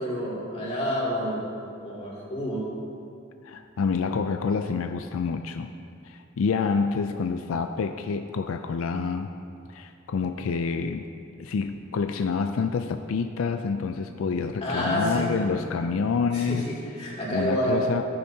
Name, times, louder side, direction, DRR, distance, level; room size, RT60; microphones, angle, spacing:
voice 1, 0.0-1.4 1.8-2.6 14.6-15.3 16.3-17.8, equal, 30° left, -6 dB, 2.6 m, -28 dB
voice 2, 3.4-5.7 6.1-9.3 9.7-11.0 11.4-16.7 17.3-18.1, left 5 dB, 90° left, 7 dB, 0.4 m, -27 dB
14.5 x 9.9 x 2.8 m, 2.5 s
head